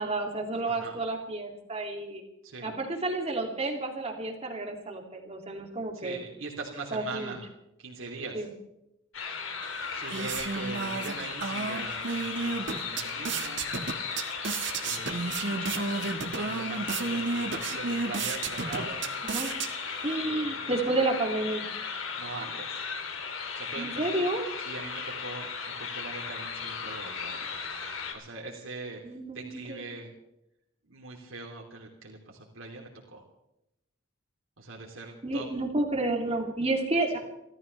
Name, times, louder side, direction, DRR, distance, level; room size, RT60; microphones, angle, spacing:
voice 1, 0.0-2.2 2.6-6.2 6.9-7.4 8.3-8.5 19.2-19.5 20.0-21.6 23.8-24.4 29.0-29.8 35.2-37.2, right 2 dB, 30° right, 2 dB, 2.5 m, -30 dB
voice 2, 0.7-1.0 2.4-2.7 5.9-7.4 7.8-8.5 9.9-13.6 14.8-19.1 20.2-20.7 22.1-22.8 23.5-24.2 24.6-27.5 28.1-29.0 29.3-30.1 30.9-33.2 34.6-35.5, right 3 dB, 90° right, -2 dB, 3.0 m, -42 dB
sound 1, 9.1-28.1, left 5 dB, 80° left, 3.0 m, -36 dB
sound 2, 9.6-20.2, right 4 dB, 60° right, 1.6 m, -33 dB
30.0 x 14.0 x 3.3 m, 0.87 s
head